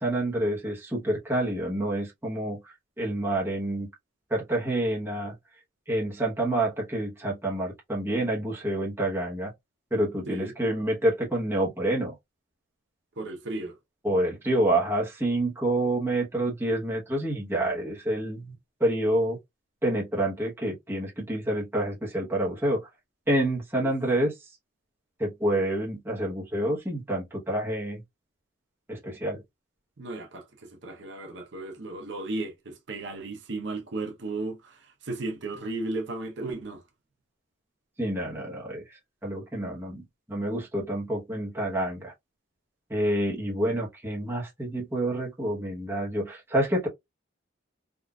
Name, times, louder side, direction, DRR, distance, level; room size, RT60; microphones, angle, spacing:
voice 1, 0.0-3.9 4.3-5.3 5.9-9.5 9.9-12.1 14.0-18.5 18.8-19.4 19.8-22.8 23.3-24.3 25.2-28.0 28.9-29.4 38.0-40.0 40.3-42.1 42.9-46.9, right 1 dB, 10° right, 0.9 m, -28 dB
voice 2, 13.2-13.8 23.8-23.9 30.0-36.8, right 2 dB, 60° right, 0.7 m, -35 dB
3.7 x 2.4 x 2.2 m
head